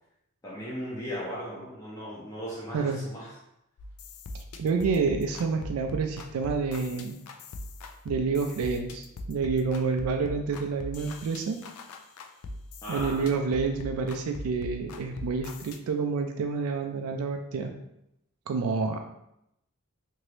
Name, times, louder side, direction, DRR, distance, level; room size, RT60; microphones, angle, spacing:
voice 1, 0.4-3.3 12.8-13.3, equal, 15° left, -7 dB, 0.5 m, -37 dB
sound 1, 3.8-15.8, left 2 dB, 80° left, 0.4 m, -41 dB
voice 2, 4.6-7.2 8.1-11.6 12.9-17.7 18.5-19.0, right 4 dB, 70° right, 4 dB, 0.3 m, -28 dB
2.9 x 2.6 x 3.1 m, 0.82 s
head